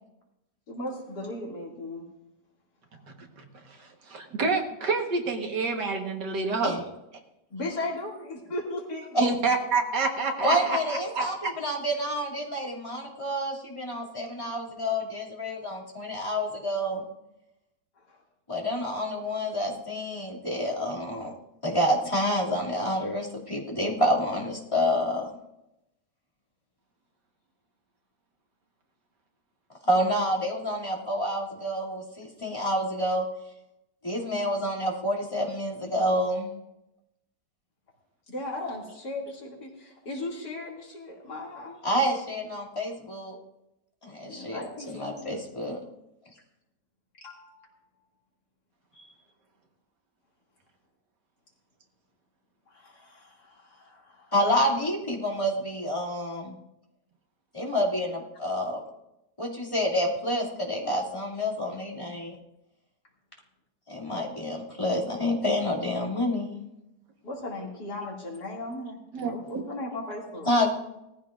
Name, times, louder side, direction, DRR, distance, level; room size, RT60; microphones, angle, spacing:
voice 1, 0.7-2.1 7.5-9.3 18.1-18.2 38.3-41.8 44.3-45.3 46.3-46.4 47.2-47.7 48.9-49.1 52.7-54.3 67.2-70.5, left 2 dB, 65° left, -3 dB, 3.1 m, -37 dB
voice 2, 3.2-6.8 9.2-11.5 69.1-69.3, right 4 dB, 75° right, 3 dB, 2.0 m, -28 dB
voice 3, 10.4-17.0 18.5-21.3 21.6-25.2 29.9-33.2 34.0-36.5 41.8-43.3 44.0-45.8 54.3-56.5 57.5-58.8 59.4-62.3 63.9-66.5 70.4-70.7, equal, 15° left, -5 dB, 2.6 m, -28 dB
18.5 x 14.5 x 2.5 m, 0.89 s
omnidirectional pair, 1.9 m